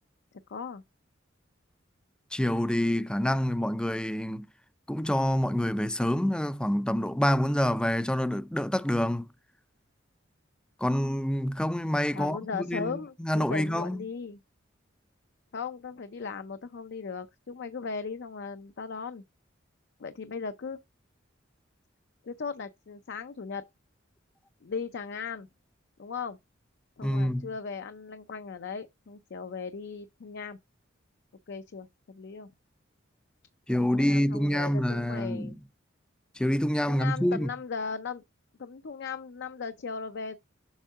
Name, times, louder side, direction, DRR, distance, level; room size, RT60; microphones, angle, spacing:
voice 1, 0.3-0.8 12.1-14.4 15.5-19.2 20.0-20.8 22.2-23.7 24.6-25.5 26.0-26.4 27.0-30.6 31.5-32.5 33.8-35.6 36.9-38.2 38.6-40.4, left 5 dB, 60° left, 0.5 m, -37 dB
voice 2, 2.3-4.5 4.9-9.3 10.8-14.0 27.0-27.5 33.7-35.6 36.4-37.5, equal, 5° left, 0.4 m, -27 dB
7.3 x 4.6 x 3.5 m
head